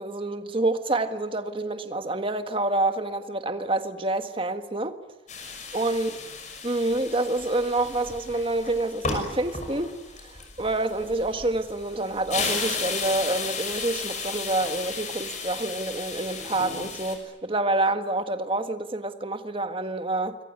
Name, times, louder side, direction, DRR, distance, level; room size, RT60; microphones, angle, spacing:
voice 1, 0.0-4.9 5.7-6.1 6.6-10.0 10.2-20.4, right 2 dB, 25° right, 1.7 m, -27 dB
sound 1, 5.3-17.2, left 4 dB, 35° left, 6.1 m, -34 dB
26.5 x 23.5 x 9.6 m
head